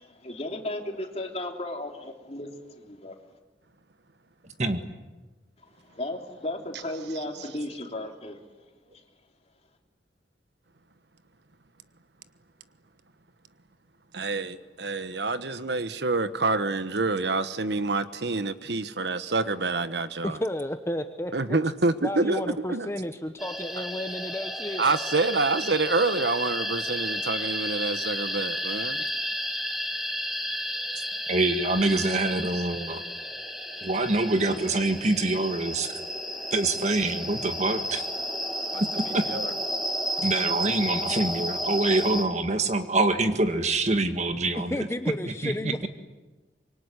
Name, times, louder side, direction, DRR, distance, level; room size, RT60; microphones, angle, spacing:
voice 1, 0.0-3.1 5.9-8.4, left 1 dB, 35° left, 3.3 m, -35 dB
voice 2, 14.1-20.4 21.3-22.9 24.8-29.1 38.7-38.8 39.3-39.5, right 3 dB, 75° right, 1.3 m, -27 dB
voice 3, 20.2-21.6 22.0-24.8 44.7-45.9, left 1 dB, 15° left, 0.9 m, -32 dB
sound 1, 23.4-42.2, equal, ahead, 2.8 m, -32 dB
voice 4, 31.3-33.0 33.8-35.9 36.5-38.0 39.1-39.3 40.2-44.8 45.3-45.9, right 2 dB, 40° right, 1.8 m, -25 dB
25.5 x 23.0 x 10.0 m
head